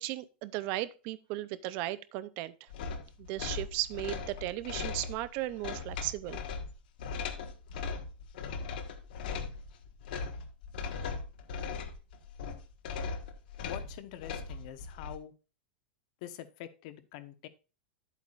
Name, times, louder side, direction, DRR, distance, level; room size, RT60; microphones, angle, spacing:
voice 1, 0.0-2.7 3.2-6.4, right 16 dB, 35° right, 0.6 m, -36 dB
sound 1, 2.7-15.2, left 5 dB, 60° left, 1.5 m, -39 dB
voice 2, 13.6-15.3 16.2-17.5, left 12 dB, 40° left, 1.1 m, -45 dB
10.5 x 8.2 x 2.5 m
supercardioid pair, 175°, 6 cm